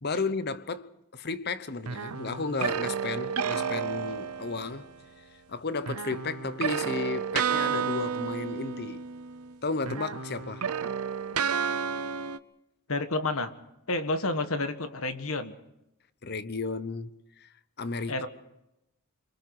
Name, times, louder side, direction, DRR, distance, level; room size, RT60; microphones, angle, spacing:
voice 1, 0.0-4.9 5.5-9.0 9.6-10.7 16.2-18.3, left 4 dB, 45° left, 0.9 m, -33 dB
sound 1, 1.9-4.9 5.9-9.5 9.8-12.4, right 7 dB, 80° right, 0.8 m, -31 dB
voice 2, 12.9-13.5 13.9-15.5 18.1-18.3, left 2 dB, 65° left, 1.5 m, -29 dB
27.0 x 23.5 x 4.8 m
head